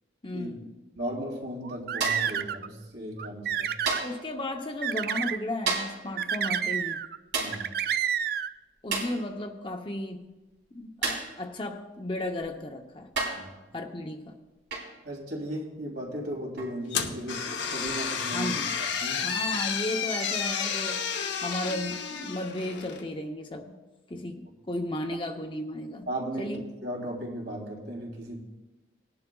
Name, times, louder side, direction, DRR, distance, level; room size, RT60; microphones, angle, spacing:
voice 1, 0.2-0.7 4.0-7.0 8.8-10.3 10.7-13.1 13.7-14.3 18.3-18.8 19.2-21.0 21.4-23.7 24.1-24.4 24.7-26.1 26.4-26.6, left 1 dB, 25° left, 3 dB, 0.8 m, -34 dB
voice 2, 1.0-3.9 7.3-7.8 13.3-13.5 15.0-19.3 26.0-28.4, right 1 dB, 70° right, -2 dB, 3.2 m, -36 dB
sound 1, 1.6-2.7 3.2-4.0 4.8-5.4 6.2-7.2 7.5-8.5, right 8 dB, 50° right, 0.3 m, -29 dB
sound 2, 2.0-2.4 3.9-4.3 5.7-6.1 7.3-7.7 8.9-9.2 11.0-11.4 12.4-12.5 13.2-13.5 14.7-15.0 16.6-16.8, right 4 dB, 90° right, 3.6 m, -31 dB
sound 3, 16.9-23.1, left 6 dB, 70° left, 0.9 m, -31 dB
19.5 x 10.5 x 2.3 m, 1.1 s
head